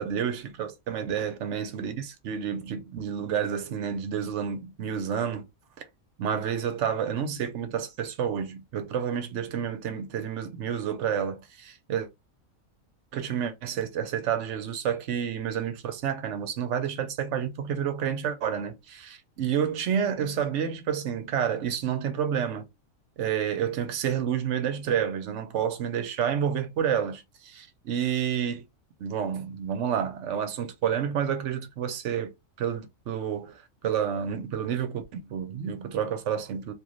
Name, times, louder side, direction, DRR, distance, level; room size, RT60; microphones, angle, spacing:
voice 1, 0.0-5.5 6.2-12.1 13.1-22.7 23.2-28.6 29.0-32.3 32.6-33.6 33.8-36.7, right 8 dB, 65° right, 1.0 m, -29 dB
3.1 x 2.6 x 3.8 m
omnidirectional pair, 1.4 m